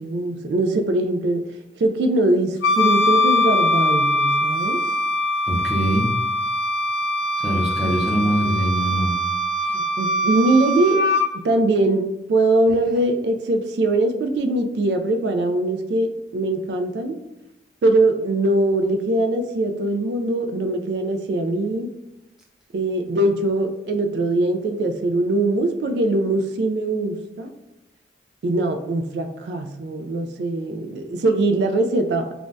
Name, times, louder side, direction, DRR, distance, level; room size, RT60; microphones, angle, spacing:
voice 1, 0.0-1.4 1.8-4.8 9.7-11.0 11.3-17.2 17.8-21.9 22.7-27.5 28.4-32.3, right 2 dB, 70° right, 6 dB, 0.3 m, -22 dB
Wind instrument woodwind instrument, 2.6-11.3, left 1 dB, 85° left, 0.3 m, -22 dB
voice 2, 5.5-6.1 7.4-9.2, equal, 5° right, -4 dB, 0.6 m, -22 dB
2.6 x 2.1 x 3.2 m, 0.93 s
head